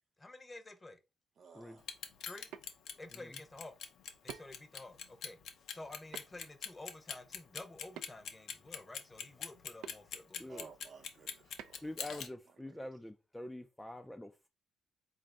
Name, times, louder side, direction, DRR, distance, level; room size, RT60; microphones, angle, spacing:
voice 1, 0.2-1.0 2.3-2.5 3.0-3.8 4.2-5.4 5.7-10.7, left 2 dB, 20° left, 0.7 m, -51 dB
voice 2, 1.4-1.8 10.5-12.2 12.6-12.9, right 5 dB, 55° right, 0.7 m, -55 dB
Clock, 1.8-12.3, left 7 dB, 70° left, 0.5 m, -43 dB
sound 1, 2.3-2.6 4.3-4.6 6.1-6.4 8.0-8.4 9.8-10.0 11.6-11.9, right 9 dB, 90° right, 0.3 m, -48 dB
voice 3, 11.8-14.5, left 1 dB, 5° left, 0.3 m, -45 dB
3.8 x 2.5 x 3.3 m
cardioid pair, 90°, 0 cm